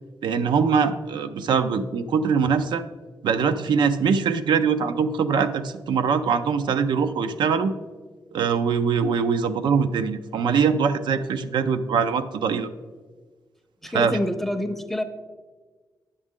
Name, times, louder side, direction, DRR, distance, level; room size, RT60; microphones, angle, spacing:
voice 1, 0.2-2.8 3.2-7.7 8.3-12.7 13.9-14.2, right 6 dB, 90° right, 10 dB, 0.5 m, -22 dB
voice 2, 13.8-15.0, left 1 dB, 5° left, 7 dB, 0.5 m, -27 dB
9.6 x 7.2 x 3.6 m, 1.4 s
wide cardioid pair, 160°, 8 cm